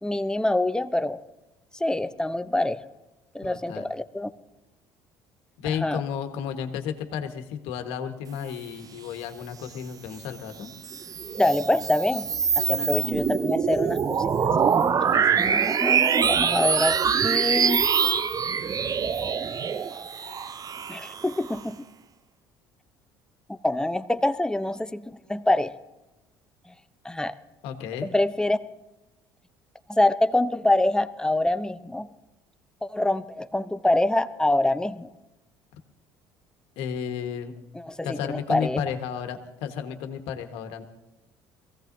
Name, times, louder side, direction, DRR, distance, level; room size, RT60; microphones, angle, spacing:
voice 1, 0.0-1.2 1.8-2.8 3.3-4.3 5.7-6.0 11.4-12.3 12.6-14.2 15.5-17.0 17.2-17.8 19.2-19.3 20.9-21.8 23.5-25.7 27.0-27.4 28.0-28.6 29.9-32.1 32.8-35.1 37.7-38.8, left 1 dB, 5° left, 11 dB, 0.7 m, -25 dB
voice 2, 3.4-3.9 5.6-10.7 12.8-13.0 15.0-15.7 27.6-28.1 36.8-37.5 38.0-40.8, left 8 dB, 75° left, 6 dB, 1.4 m, -33 dB
sound 1, 10.7-21.6, right 7 dB, 35° right, 0.6 m, -24 dB
22.0 x 16.0 x 2.7 m, 1.0 s
hypercardioid pair, 70°, 10 cm